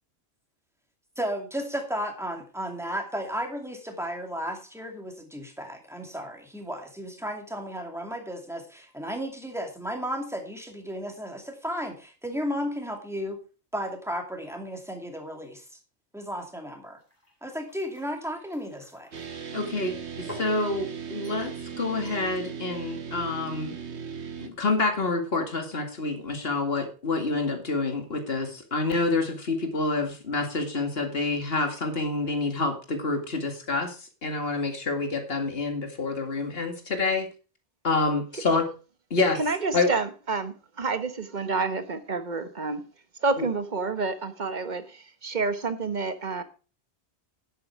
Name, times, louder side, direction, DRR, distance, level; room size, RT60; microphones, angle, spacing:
voice 1, 1.2-13.4 13.7-15.6 16.1-17.0 17.4-19.1, equal, ahead, 2.4 m, -34 dB
sound 1, 17.0-19.3 19.9-20.6 21.2-21.6 22.0-22.3, left 1 dB, 15° left, 4.2 m, -48 dB
sound 2, 19.1-24.5, right 7 dB, 80° right, 1.5 m, -37 dB
voice 2, 19.5-23.8 24.4-37.3 37.8-38.6 39.1-39.4 39.7-39.9 43.4-43.5, left 3 dB, 60° left, 2.4 m, -27 dB
voice 3, 39.3-42.8 43.2-46.4, right 4 dB, 45° right, 1.3 m, -29 dB
10.5 x 8.5 x 4.8 m
omnidirectional pair, 1.1 m